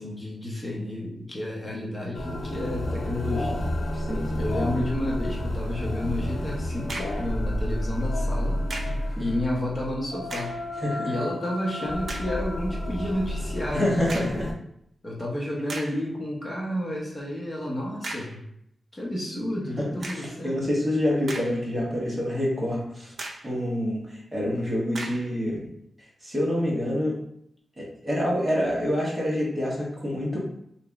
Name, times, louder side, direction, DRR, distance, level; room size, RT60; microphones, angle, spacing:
voice 1, 0.0-3.7 4.3-8.6 9.2-10.5 11.0-14.4 15.0-18.4 18.9-20.6, left 1 dB, 25° left, -3 dB, 1.0 m, -31 dB
sound 1, 2.1-14.5, left 1 dB, 85° left, 0.7 m, -30 dB
voice 2, 3.9-4.5 9.2-9.3 10.8-11.1 13.7-14.5 19.8-19.9 20.1-23.1 23.4-25.7 26.2-27.2 27.8-30.4, left 1 dB, 15° right, -5 dB, 1.2 m, -27 dB
sound 2, 6.9-7.3 8.7-9.1 10.2-10.7 11.3-11.4 12.1-12.4 14.1-14.5 15.2-15.3 15.7-16.1 18.0-18.4 20.0-20.4 21.0-21.8 22.2-22.3 23.2-23.6 24.9-25.3, right 2 dB, 60° right, 0.5 m, -37 dB
3.0 x 2.7 x 3.5 m, 0.73 s
wide cardioid pair, 120°, 0 cm